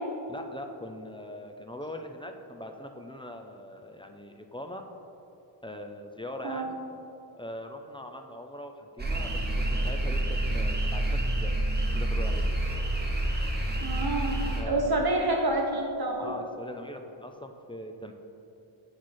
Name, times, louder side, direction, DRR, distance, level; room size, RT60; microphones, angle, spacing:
voice 1, 0.3-4.8 5.6-6.8 7.4-9.4 9.7-12.7 14.5-15.1 16.2-18.1, left 1 dB, 10° left, 4 dB, 0.4 m, -41 dB
sound 1, 9.0-14.6, right 1 dB, 20° right, 1.0 m, -28 dB
voice 2, 13.8-16.3, right 2 dB, 50° right, 1 dB, 1.1 m, -28 dB
8.2 x 4.7 x 4.3 m, 2.8 s
wide cardioid pair, 85°, 49 cm